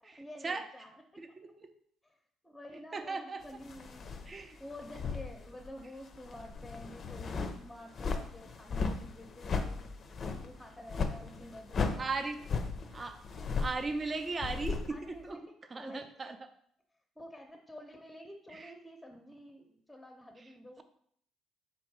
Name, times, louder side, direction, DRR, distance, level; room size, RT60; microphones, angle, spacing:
voice 1, 0.0-1.0 2.0-2.2 2.4-9.8 10.4-12.3 14.9-15.4 15.7-16.1 17.2-20.8, left 1 dB, 5° left, 3 dB, 0.7 m, -50 dB
voice 2, 1.2-1.7 2.9-3.4 4.3-4.6 12.0-12.4 12.9-13.2 13.6-15.4 15.7-16.4 18.5-18.7, right 3 dB, 35° right, 8 dB, 0.5 m, -37 dB
sound 1, 3.6-5.8 6.1-15.2, left 4 dB, 45° left, 0.5 m, -36 dB
4.0 x 2.6 x 4.6 m, 0.65 s
hypercardioid pair, 60°, 0 cm